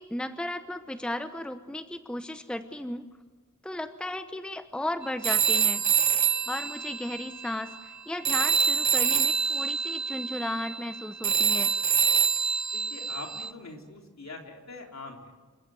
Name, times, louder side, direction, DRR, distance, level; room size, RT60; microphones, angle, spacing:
voice 1, 0.0-3.1 3.6-5.8 6.5-11.7, left 1 dB, 5° left, 9 dB, 0.9 m, -35 dB
Telephone, 5.2-8.0 8.3-13.5, right 7 dB, 60° right, 1.1 m, -26 dB
voice 2, 12.7-15.3, left 2 dB, 60° left, 1 dB, 3.9 m, -43 dB
28.0 x 15.5 x 9.7 m, 1.3 s
wide cardioid pair, 105°, 31 cm